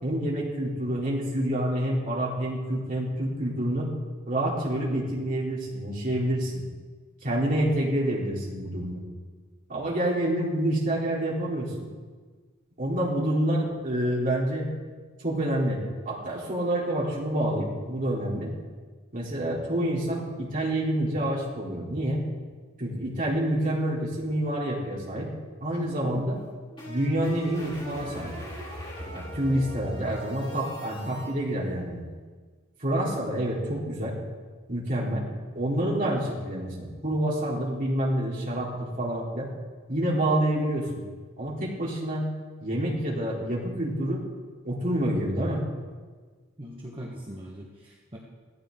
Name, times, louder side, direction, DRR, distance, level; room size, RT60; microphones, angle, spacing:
voice 1, 0.0-3.9 4.3-6.6 7.2-9.0 9.7-11.9 12.8-14.7 15.2-18.5 19.1-22.2 22.8-25.3 25.6-26.4 26.9-28.3 29.1-32.0 32.8-34.2 34.7-35.3 35.5-39.5 39.9-41.0 41.4-42.3 42.6-44.2 44.6-45.6, right 1 dB, 40° right, -5 dB, 3.6 m, -27 dB
sound 1, 26.3-31.3, equal, 25° left, 5.3 m, -40 dB
voice 2, 46.6-48.2, equal, 25° right, -4 dB, 1.5 m, -41 dB
16.5 x 14.0 x 3.9 m, 1.4 s
head